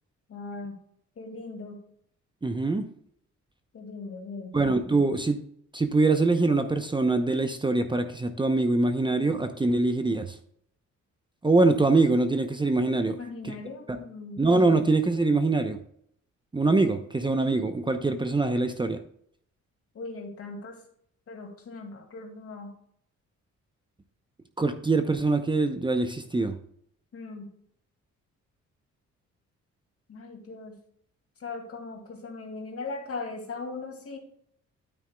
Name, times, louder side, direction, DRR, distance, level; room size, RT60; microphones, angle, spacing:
voice 1, 0.3-0.7 1.2-1.8 3.7-4.6 13.1-14.4 19.9-20.8 21.3-22.7 27.1-27.5 30.1-30.8 31.4-34.2, left 3 dB, 50° left, 3 dB, 2.3 m, -39 dB
voice 2, 2.4-2.9 4.5-5.4 5.7-10.3 11.4-13.2 13.4-13.5 14.4-15.8 16.5-19.0 24.6-26.5, right 3 dB, 15° right, 7 dB, 0.8 m, -24 dB
9.4 x 9.1 x 2.3 m, 0.67 s
cardioid pair, 90°, 30 cm